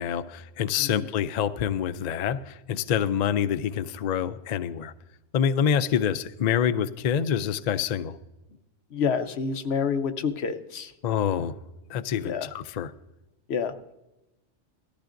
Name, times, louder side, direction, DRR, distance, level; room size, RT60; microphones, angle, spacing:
voice 1, 0.0-4.9 5.3-8.1 11.0-11.5 11.9-12.9, left 8 dB, 80° left, 11 dB, 0.3 m, -26 dB
voice 2, 8.9-10.9 12.2-12.5 13.5-13.9, left 6 dB, 60° left, 8 dB, 1.0 m, -28 dB
18.0 x 13.5 x 2.5 m, 0.97 s
omnidirectional pair, 1.3 m